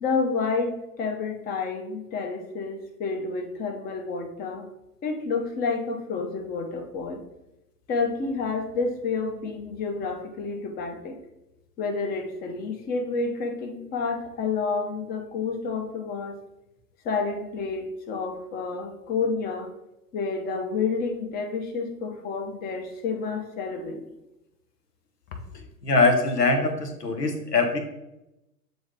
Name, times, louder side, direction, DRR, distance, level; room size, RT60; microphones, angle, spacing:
voice 1, 0.0-4.7 5.0-7.2 7.9-11.2 11.8-16.4 17.0-19.7 20.1-24.1 25.5-25.6, left 4 dB, 20° left, 4 dB, 0.7 m, -29 dB
voice 2, 25.8-27.8, left 3 dB, 80° left, 4 dB, 1.0 m, -22 dB
7.1 x 3.8 x 3.6 m, 0.91 s
figure-of-eight pair, 100°, 47 cm